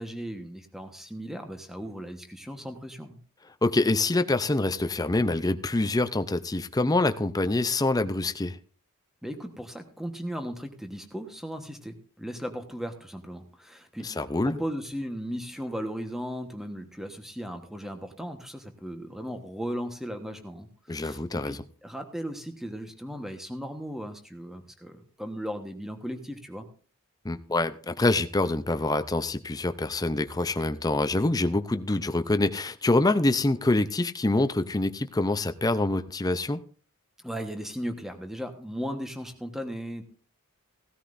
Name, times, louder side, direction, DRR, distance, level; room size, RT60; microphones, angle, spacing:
voice 1, 0.0-3.2 9.2-26.7 37.2-40.0, equal, ahead, 1.2 m, -37 dB
voice 2, 3.6-8.6 14.0-14.6 20.9-21.6 27.2-36.6, left 2 dB, 15° left, 0.5 m, -25 dB
17.0 x 13.0 x 2.6 m
head